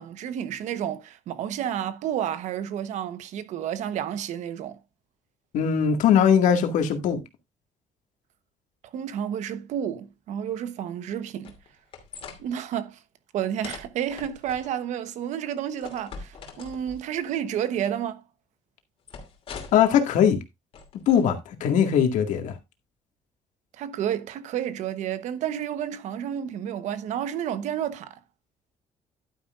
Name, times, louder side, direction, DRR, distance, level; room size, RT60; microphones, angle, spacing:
voice 1, 0.0-4.8 8.9-11.5 12.4-13.0 13.3-18.2 23.8-28.2, right 9 dB, 70° right, 1.1 m, -30 dB
voice 2, 5.5-7.2 19.7-20.4 21.1-22.6, left 8 dB, 75° left, 2.0 m, -20 dB
sound 1, 11.4-12.4 13.6-14.7 15.8-17.1 19.1-19.9 20.7-21.2, left 5 dB, 45° left, 2.8 m, -42 dB
11.5 x 9.4 x 2.5 m
cardioid pair, 165°, 13 cm